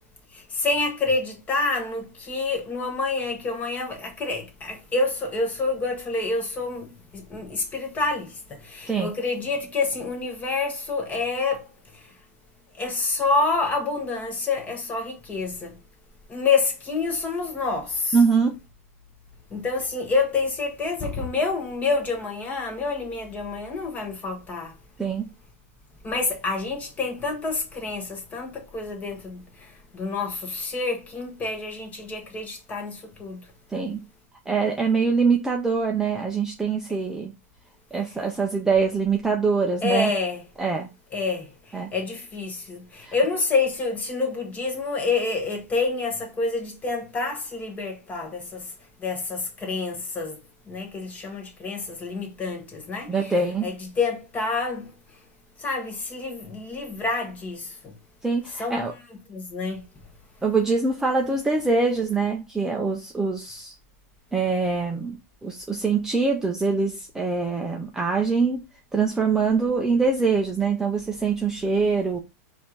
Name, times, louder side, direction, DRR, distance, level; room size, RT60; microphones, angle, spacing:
voice 1, 0.6-6.8 7.3-8.3 8.8-11.6 12.8-15.7 16.3-18.2 19.5-24.7 26.0-28.0 28.3-28.5 28.7-29.4 29.9-32.9 33.2-33.4 39.8-40.4 41.1-41.4 41.9-42.8 43.1-48.4 49.0-50.3 50.7-53.3 53.6-54.8 55.6-57.6 58.6-58.8 59.3-59.8, left 3 dB, 20° left, 1.1 m, -27 dB
voice 2, 18.1-18.5 25.0-25.3 33.7-34.0 34.5-37.3 37.9-40.1 40.6-40.9 41.7-41.9 43.0-43.1 53.1-53.7 58.2-58.9 60.4-63.8 64.3-68.6 68.9-72.2, right 4 dB, 5° right, 0.4 m, -24 dB
4.2 x 2.6 x 4.4 m
supercardioid pair, 150°, 8 cm